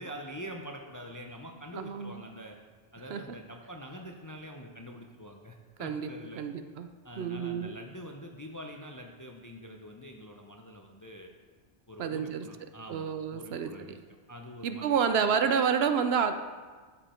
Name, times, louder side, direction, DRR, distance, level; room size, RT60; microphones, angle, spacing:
voice 1, 0.0-2.6 2.9-6.4 7.0-11.3 11.9-15.0, equal, 25° left, 2 dB, 0.4 m, -45 dB
voice 2, 1.7-2.2 3.1-3.2 5.8-6.1 6.4-6.9 7.2-7.7 12.0-12.5 12.9-13.9 14.6-16.3, right 7 dB, 65° right, 8 dB, 0.8 m, -29 dB
12.5 x 5.2 x 4.3 m, 1.5 s
omnidirectional pair, 1.2 m